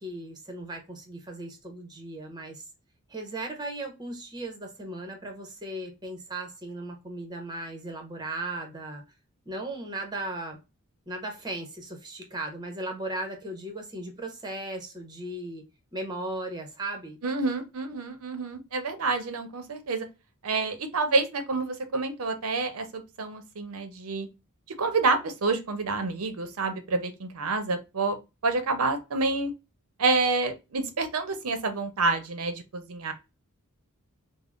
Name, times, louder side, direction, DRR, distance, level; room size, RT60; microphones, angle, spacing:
voice 1, 0.0-2.6 3.1-9.0 9.4-10.6 11.1-15.7 15.9-17.2, right 2 dB, 20° right, 0.8 m, -37 dB
voice 2, 17.2-20.1 20.4-24.3 24.8-28.2 28.4-29.5 30.0-33.1, right 3 dB, 70° right, 0.6 m, -28 dB
3.5 x 2.0 x 2.4 m
head